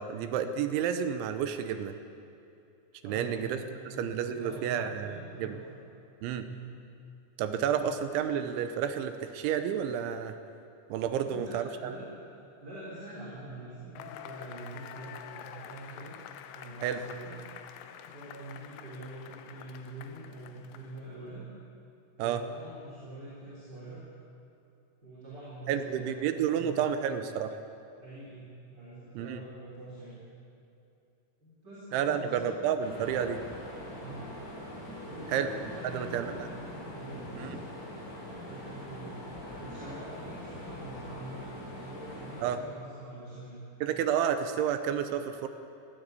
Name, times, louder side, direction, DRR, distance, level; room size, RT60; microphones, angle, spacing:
voice 1, 0.0-2.0 3.0-5.6 6.2-6.4 7.4-10.3 10.9-12.0 16.8-17.0 22.2-22.5 25.7-27.6 29.2-29.4 31.9-33.4 35.3-35.5 35.9-36.5 37.4-37.6 42.4-42.6 43.8-45.5, right 8 dB, 75° right, 9 dB, 3.0 m, -30 dB
voice 2, 3.0-5.8 6.4-6.7 11.1-12.1 12.6-16.1 16.5-17.4 18.1-21.4 22.2-24.0 25.0-27.1 28.0-30.2 31.4-32.6 34.0-34.3 35.0-36.5 36.9-37.6 38.3-39.1 39.6-41.5 41.8-43.6, right 1 dB, 20° right, -8 dB, 4.2 m, -45 dB
Cheering / Applause / Crowd, 14.0-21.2, left 9 dB, 80° left, 3.3 m, -47 dB
sound 1, 32.8-42.5, left 1 dB, 60° left, 7.0 m, -43 dB
22.0 x 16.5 x 8.3 m, 2.6 s
omnidirectional pair, 5.9 m